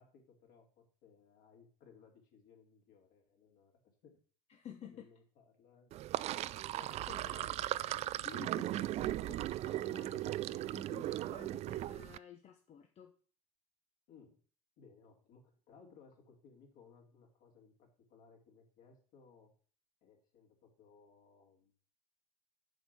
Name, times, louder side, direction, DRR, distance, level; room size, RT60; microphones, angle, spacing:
voice 1, 0.0-3.7 4.0-4.2 4.9-6.3 7.6-7.7 9.2-9.5 14.1-14.4 14.8-19.5 20.0-21.7, left 5 dB, 55° left, 1 dB, 3.2 m, -62 dB
voice 2, 4.5-5.1 6.7-13.1, left 9 dB, 35° left, 6 dB, 0.9 m, -53 dB
Sink (filling or washing), 5.9-12.2, right 14 dB, 35° right, 0.4 m, -37 dB
8.2 x 5.3 x 6.2 m, 0.43 s
hypercardioid pair, 80°, 19 cm